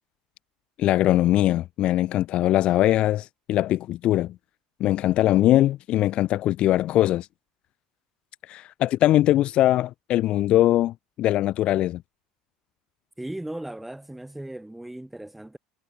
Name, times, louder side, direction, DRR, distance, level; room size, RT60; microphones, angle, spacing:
voice 1, 0.8-4.3 4.8-7.3 8.5-12.0, left 14 dB, 50° left, 0.5 m, -21 dB
voice 2, 13.2-15.6, right 1 dB, 5° right, 7.2 m, -37 dB
supercardioid pair, 120°, 2 cm